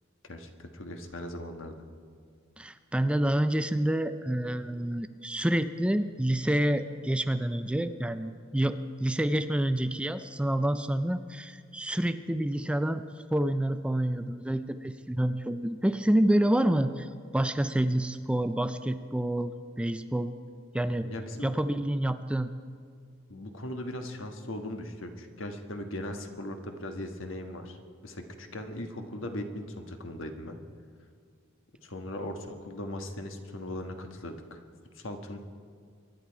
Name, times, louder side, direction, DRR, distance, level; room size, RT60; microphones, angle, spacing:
voice 1, 0.2-1.9 21.0-21.6 23.3-30.6 31.8-34.6 34.9-35.4, left 1 dB, 70° left, 5 dB, 1.4 m, -39 dB
voice 2, 2.6-13.0 13.3-19.5 19.8-20.3 20.7-21.1 21.4-22.5, right 1 dB, 5° right, 10 dB, 0.4 m, -28 dB
24.0 x 10.5 x 4.7 m, 2.2 s
head